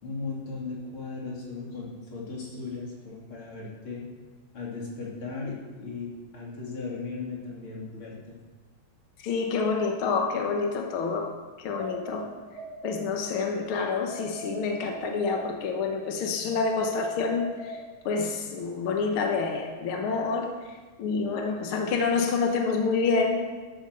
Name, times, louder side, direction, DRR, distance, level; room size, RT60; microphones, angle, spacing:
voice 1, 0.0-4.0 4.5-6.1 6.3-8.4, left 4 dB, 40° left, -3 dB, 3.3 m, -37 dB
voice 2, 9.2-11.3 11.6-12.3 12.8-17.7 18.0-20.5 21.0-23.4, left 4 dB, 70° left, 3 dB, 1.3 m, -27 dB
sound 1, 11.8-13.5 14.1-16.0 16.5-18.4, right 1 dB, 30° right, 2.2 m, -42 dB
11.5 x 8.8 x 6.8 m, 1.3 s
omnidirectional pair, 3.9 m